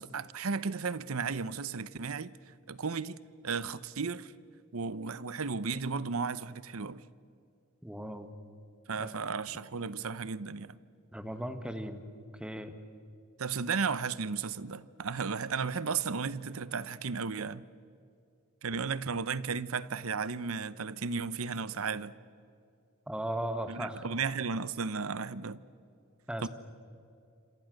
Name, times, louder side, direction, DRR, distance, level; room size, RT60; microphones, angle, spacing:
voice 1, 0.0-2.3 2.7-3.2 3.4-4.3 4.7-7.1 8.9-10.8 13.4-17.6 18.6-22.1 23.7-25.6 26.4-26.5, right 5 dB, 75° right, 0.8 m, -34 dB
voice 2, 7.8-8.3 9.0-9.2 11.1-12.0 12.4-12.7 23.1-24.0 26.3-26.5, right 1 dB, 5° right, 1.5 m, -37 dB
27.5 x 26.5 x 6.6 m
head